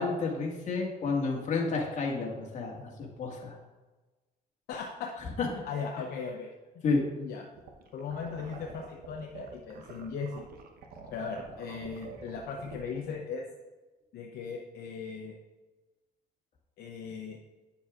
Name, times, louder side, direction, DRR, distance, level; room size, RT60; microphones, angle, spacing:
voice 1, 0.0-2.9 3.2-3.5 5.4-5.5 6.8-7.0, left 4 dB, 45° left, -2 dB, 1.8 m, -30 dB
voice 2, 4.7-5.1 5.5-6.5 7.2-7.5 7.9-10.5 11.1-13.4 14.1-15.3 16.8-17.4, left 5 dB, 65° left, 1 dB, 0.7 m, -38 dB
sound 1, 7.5-13.1, right 5 dB, 65° right, 1.0 m, -47 dB
9.3 x 6.9 x 2.5 m, 1.2 s
cardioid pair, 110°, 17 cm